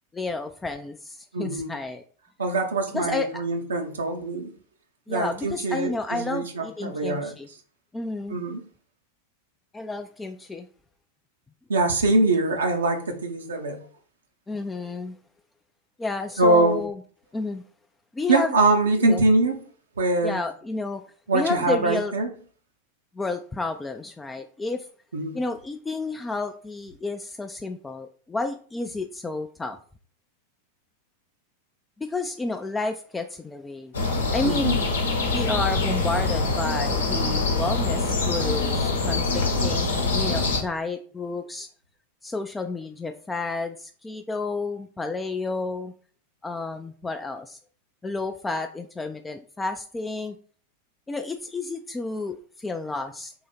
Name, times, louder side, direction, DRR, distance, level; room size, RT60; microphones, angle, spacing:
voice 1, 0.1-2.0 2.9-3.4 5.1-7.5 7.9-8.4 9.7-10.7 14.5-15.2 16.0-17.0 17.3-17.6 18.1-18.6 19.0-19.3 20.2-21.0 21.3-22.1 23.2-24.9 25.3-29.8 32.0-33.9 34.3-34.9 35.3-41.7 42.2-45.9 46.4-47.6 48.0-50.4 51.1-53.3, left 3 dB, 10° left, 0.3 m, -31 dB
voice 2, 1.3-1.7 2.4-4.5 5.1-7.3 8.3-8.6 11.7-13.8 16.4-16.8 18.3-19.6 20.0-20.4 21.3-22.3 25.1-25.4 34.4-34.8, right 2 dB, 70° right, 0.6 m, -23 dB
sound 1, 33.9-40.6, left 3 dB, 70° left, 0.9 m, -24 dB
3.8 x 2.7 x 4.1 m
figure-of-eight pair, 90°, 0 cm